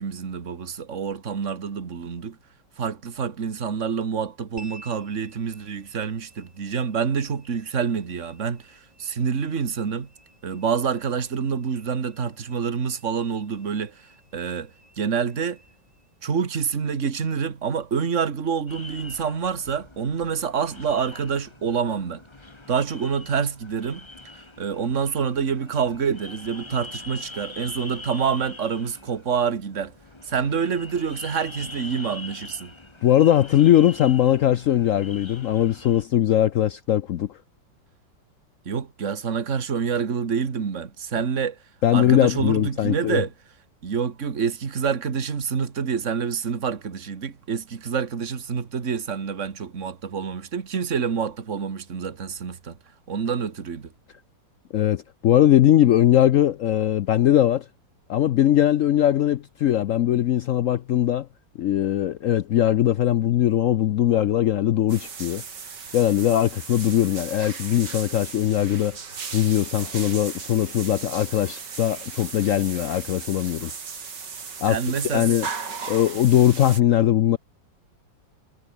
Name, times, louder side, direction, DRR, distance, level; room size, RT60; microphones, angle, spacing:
voice 1, 0.0-2.4 2.8-10.1 10.4-14.0 14.3-14.7 15.0-15.6 16.2-22.2 22.7-24.1 24.3-29.9 30.2-32.7 38.7-41.6 41.9-43.3 43.8-52.8 53.1-53.9 74.7-75.3, right 6 dB, 40° right, 2.0 m, -27 dB
sound 1, 4.6-19.2, right 1 dB, 20° right, 7.2 m, -55 dB
sound 2, 18.7-36.0, left 2 dB, 15° left, 1.4 m, -43 dB
voice 2, 33.0-37.4 41.8-43.2 54.7-57.7 58.1-61.3 61.6-65.4 65.9-69.0 69.3-73.7 74.6-75.5 75.9-77.4, left 11 dB, 85° left, 0.7 m, -20 dB
sound 3, 64.9-76.8, right 5 dB, 60° right, 3.1 m, -37 dB
omnidirectional pair, 2.1 m